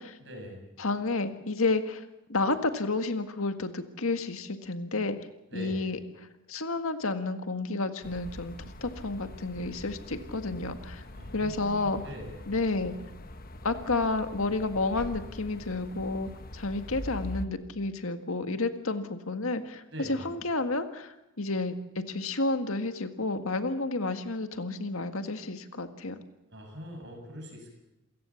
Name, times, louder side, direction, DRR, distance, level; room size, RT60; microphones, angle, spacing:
voice 1, 0.2-0.6 5.5-5.8 11.1-12.4 19.9-20.3 26.5-27.7, equal, 55° right, 3 dB, 7.4 m, -42 dB
voice 2, 0.8-5.2 5.5-11.0 11.3-12.0 12.5-12.9 13.6-26.2, left 3 dB, 75° left, 8 dB, 1.8 m, -31 dB
sound 1, 8.0-17.5, left 1 dB, 40° left, 1.2 m, -43 dB
28.0 x 16.5 x 7.2 m, 0.91 s
head